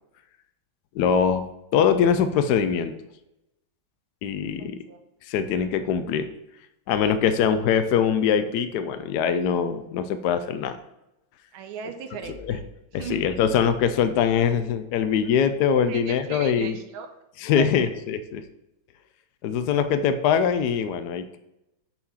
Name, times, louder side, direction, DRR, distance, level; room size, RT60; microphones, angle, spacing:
voice 1, 0.9-1.4 1.7-2.9 4.2-4.8 5.3-6.3 6.9-10.8 12.3-12.6 12.9-16.8 17.4-18.4 19.4-21.4, left 7 dB, 70° left, 10 dB, 1.0 m, -23 dB
voice 2, 4.6-5.0 11.5-12.6 13.0-13.2 15.9-17.1 17.6-17.9, right 7 dB, 90° right, 6 dB, 1.6 m, -37 dB
8.6 x 4.5 x 5.6 m, 0.91 s
omnidirectional pair, 2.2 m